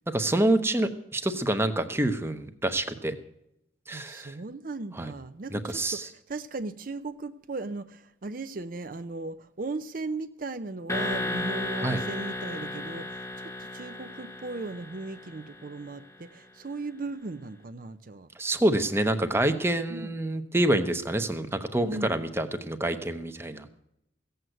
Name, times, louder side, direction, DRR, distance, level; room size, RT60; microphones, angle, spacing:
voice 1, 0.1-3.1 3.9-4.3 5.0-5.1 5.5-6.0 11.8-12.0 18.4-23.8, right 1 dB, 10° right, 0.8 m, -27 dB
voice 2, 3.9-18.3 19.9-20.1 21.9-22.2, right 3 dB, 45° right, 0.5 m, -37 dB
sound 1, 10.9-15.8, left 1 dB, 15° left, 1.1 m, -34 dB
16.0 x 7.9 x 7.8 m
head